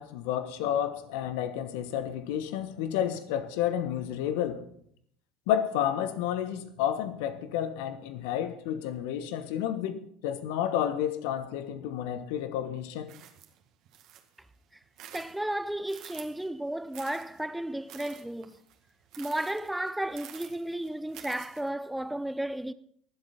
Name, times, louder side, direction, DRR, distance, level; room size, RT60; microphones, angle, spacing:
voice 1, 0.0-4.7 5.5-13.1, left 10 dB, 70° left, 1.3 m, -31 dB
sound 1, 13.0-14.4 14.8-16.5 16.9-21.7, right 10 dB, 55° right, 2.0 m, -49 dB
voice 2, 15.1-18.6 19.2-22.7, right 1 dB, 5° right, 0.7 m, -33 dB
23.5 x 7.8 x 4.4 m
hypercardioid pair, 75°, 0 cm